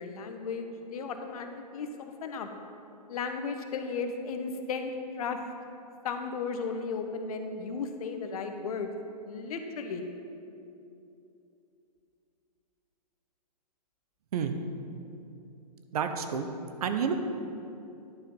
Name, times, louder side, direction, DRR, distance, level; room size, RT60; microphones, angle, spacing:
voice 1, 0.0-2.5 3.1-5.4 6.0-8.9 9.3-10.0, left 5 dB, 60° left, 6 dB, 0.9 m, -35 dB
voice 2, 15.9-16.5 16.8-17.1, right 7 dB, 60° right, 7 dB, 0.8 m, -29 dB
10.5 x 4.7 x 5.3 m, 2.8 s
hypercardioid pair, 135°, 21 cm